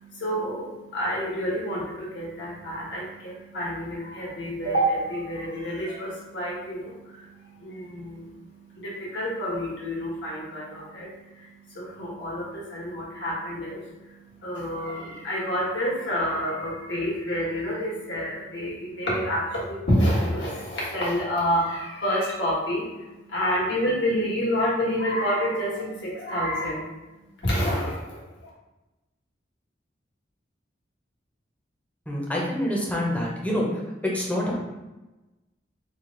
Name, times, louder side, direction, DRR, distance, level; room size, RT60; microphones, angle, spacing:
voice 1, 0.0-26.9 27.4-28.5, equal, 80° left, -6 dB, 1.3 m, -28 dB
voice 2, 32.1-33.7 34.1-34.6, equal, 10° left, -4 dB, 0.7 m, -26 dB
3.1 x 2.4 x 3.8 m, 1.1 s
head